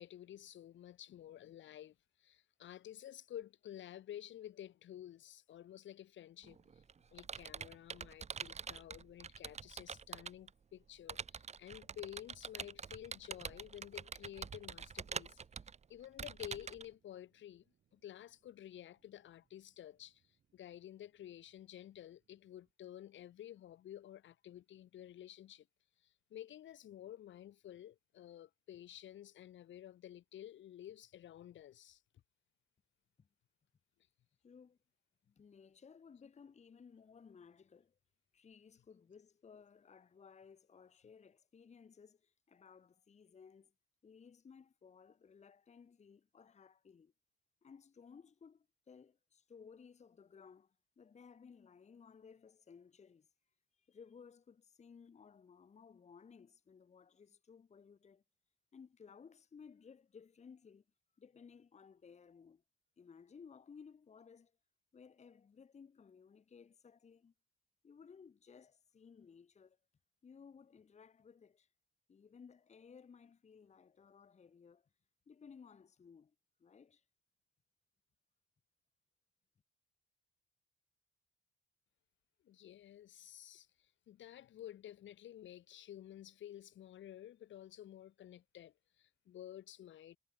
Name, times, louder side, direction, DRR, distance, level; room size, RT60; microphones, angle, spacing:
voice 1, 0.0-6.7 7.1-15.4 15.9-17.6 17.9-20.2 20.5-25.7 26.0-32.0 82.4-90.2, left 11 dB, 70° left, 2.3 m, -52 dB
Computer keyboard, 6.4-10.5 11.1-16.9, right 6 dB, 35° right, 1.0 m, -45 dB
sound 1, 11.9-22.7, right 8 dB, 55° right, 7.0 m, -80 dB
voice 2, 34.4-34.8 35.3-38.0 38.3-43.7 44.0-47.1 47.6-53.3 53.7-58.2 58.7-60.8 61.2-62.6 63.0-64.5 64.9-67.3 67.8-69.8 70.2-71.7 72.1-74.9 75.3-76.3 76.6-77.1, left 6 dB, 35° left, 1.2 m, -59 dB
cardioid pair, 90°, 20 cm